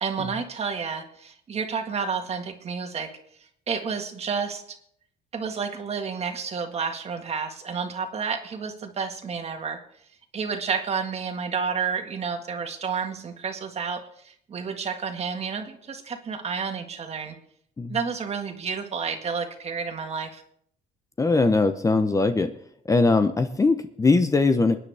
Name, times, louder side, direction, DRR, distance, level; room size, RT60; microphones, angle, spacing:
voice 1, 0.0-3.1 3.7-4.8 5.3-9.8 10.3-17.4 17.9-20.4, right 5 dB, 40° right, 5 dB, 1.8 m, -30 dB
voice 2, 21.2-22.5 22.9-24.8, left 3 dB, 20° left, 9 dB, 0.8 m, -21 dB
23.5 x 9.9 x 3.5 m, 0.68 s
cardioid pair, 110°, 17 cm